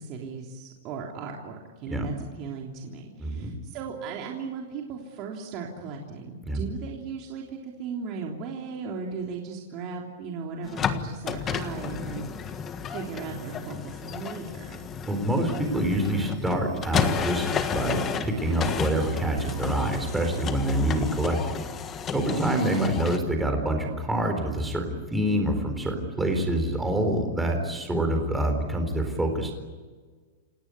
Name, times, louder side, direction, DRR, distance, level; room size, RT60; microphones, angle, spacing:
voice 1, 0.0-12.5 12.9-14.8 22.3-22.6, right 5 dB, 35° right, 0 dB, 3.3 m, -37 dB
voice 2, 3.2-3.5 6.5-6.6 15.1-21.5 22.1-29.5, right 1 dB, 5° right, 4 dB, 4.1 m, -26 dB
sound 1, 10.6-23.2, left 7 dB, 20° left, 1.6 m, -32 dB
29.5 x 18.0 x 9.6 m, 1.5 s
supercardioid pair, 160°, 0 cm